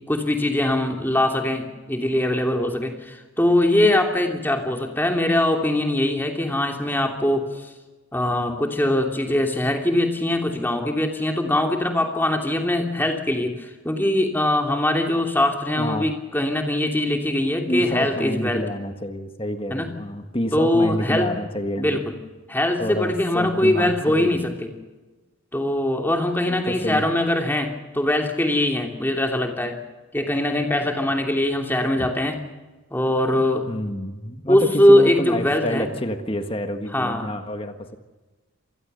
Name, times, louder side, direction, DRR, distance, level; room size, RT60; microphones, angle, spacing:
voice 1, 0.1-7.7 8.1-18.6 19.7-19.9 20.5-21.3 21.8-22.2 22.5-24.7 25.5-29.8 30.1-32.4 32.9-33.7 34.5-35.9 36.9-37.3, left 1 dB, 10° left, 3 dB, 2.9 m, -22 dB
voice 2, 15.8-16.1 17.7-22.0 22.8-24.4 26.5-27.0 32.0-32.1 33.7-38.0, left 1 dB, 25° left, 7 dB, 1.6 m, -28 dB
27.0 x 19.5 x 6.8 m, 1.2 s
head